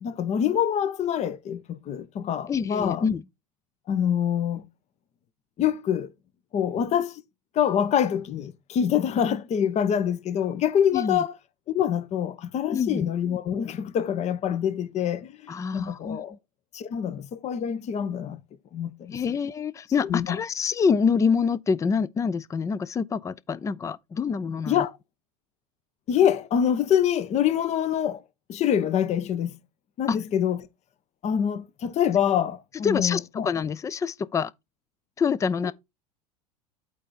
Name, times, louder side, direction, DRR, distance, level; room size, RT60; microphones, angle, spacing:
voice 1, 0.0-3.0 3.9-4.6 5.6-6.1 6.5-7.2 7.5-11.3 11.7-16.3 16.7-18.4 18.7-19.2 20.1-20.4 24.7-24.9 26.1-28.2 28.5-29.6 30.0-30.6 31.2-33.5, left 9 dB, 35° left, 0.9 m, -25 dB
voice 2, 2.5-3.2 10.9-11.2 12.7-13.1 15.5-16.4 19.1-24.9 30.1-30.2 32.8-34.5 35.2-35.7, left 6 dB, 15° left, 0.4 m, -26 dB
8.4 x 3.4 x 4.2 m
hypercardioid pair, 85°, 19 cm